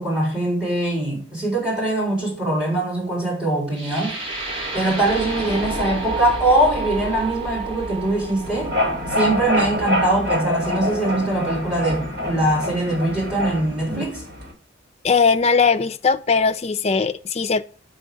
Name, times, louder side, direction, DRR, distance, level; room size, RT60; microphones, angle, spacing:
voice 1, 0.0-4.2 4.7-8.7 9.1-14.2, right 1 dB, 5° right, 3.8 m, -22 dB
sound 1, 3.7-11.8, right 3 dB, 25° right, 2.2 m, -31 dB
sound 2, 8.4-14.5, left 1 dB, 70° right, 2.4 m, -26 dB
voice 2, 15.0-17.6, left 5 dB, 35° left, 0.4 m, -19 dB
7.9 x 5.3 x 5.0 m
head